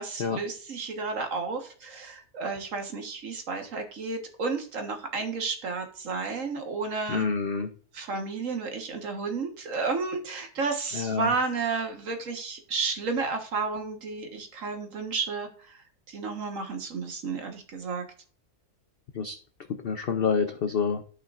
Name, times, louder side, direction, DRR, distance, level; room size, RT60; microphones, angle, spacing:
voice 1, 0.0-7.3 7.9-15.8 16.1-18.0, right 4 dB, 55° right, 5 dB, 1.7 m, -32 dB
voice 2, 7.1-7.7 10.9-11.3 19.1-19.4 19.7-21.0, left 5 dB, 60° left, 7 dB, 0.6 m, -27 dB
13.5 x 5.7 x 2.5 m, 0.43 s
omnidirectional pair, 1.7 m